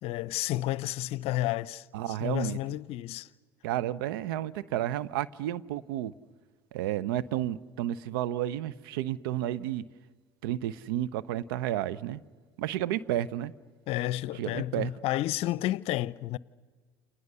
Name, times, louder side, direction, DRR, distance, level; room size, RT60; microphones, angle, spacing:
voice 1, 0.0-3.3 13.9-16.4, left 15 dB, 55° left, 0.7 m, -31 dB
voice 2, 1.9-2.6 3.6-6.1 6.7-9.8 10.4-12.2 12.6-13.5 14.3-14.9, right 12 dB, 70° right, 0.9 m, -31 dB
29.5 x 27.5 x 6.9 m
hypercardioid pair, 75°, 12 cm